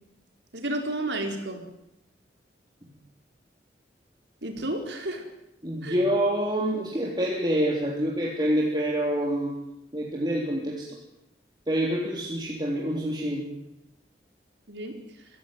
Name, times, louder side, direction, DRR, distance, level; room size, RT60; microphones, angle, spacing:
voice 1, 0.5-1.6 4.4-5.3 5.8-6.0 14.7-15.0, right 1 dB, 80° right, 3 dB, 4.4 m, -31 dB
voice 2, 5.6-9.5 9.9-10.9 11.7-13.4, equal, 25° right, -2 dB, 3.5 m, -26 dB
24.0 x 16.0 x 9.5 m, 0.85 s
head